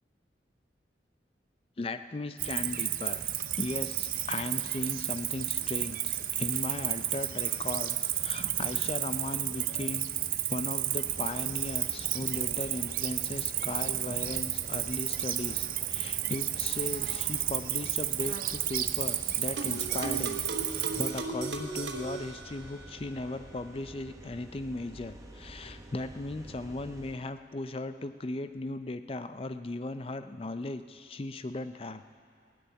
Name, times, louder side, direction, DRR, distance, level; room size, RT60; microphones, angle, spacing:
voice 1, 1.8-3.3 3.6-10.1 10.5-32.0, left 2 dB, 30° left, 10 dB, 0.5 m, -37 dB
Cricket, 2.4-21.1, right 12 dB, 50° right, 0.5 m, -32 dB
sound 1, 11.0-27.2, right 1 dB, 20° right, 0.8 m, -50 dB
sound 2, 19.6-23.0, right 3 dB, 75° right, 1.1 m, -37 dB
16.5 x 7.0 x 9.8 m, 2.3 s
head